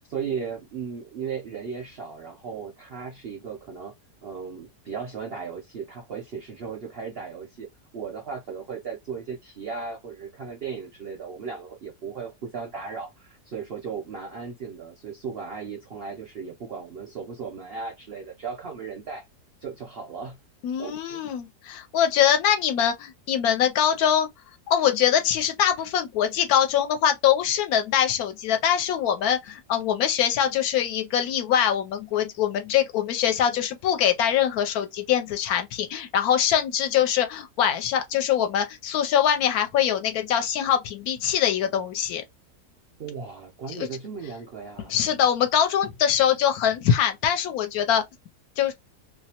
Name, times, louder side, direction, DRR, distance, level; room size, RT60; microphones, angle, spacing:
voice 1, 0.0-3.9 4.2-7.7 7.9-19.3 19.6-20.4 20.8-21.2 43.0-44.9, right 6 dB, 65° right, 0.6 m, -36 dB
voice 2, 20.6-24.3 24.7-42.2 43.8-43.9 44.9-48.0 48.6-48.7, left 9 dB, 75° left, 1.0 m, -23 dB
2.6 x 2.0 x 2.8 m
omnidirectional pair, 1.7 m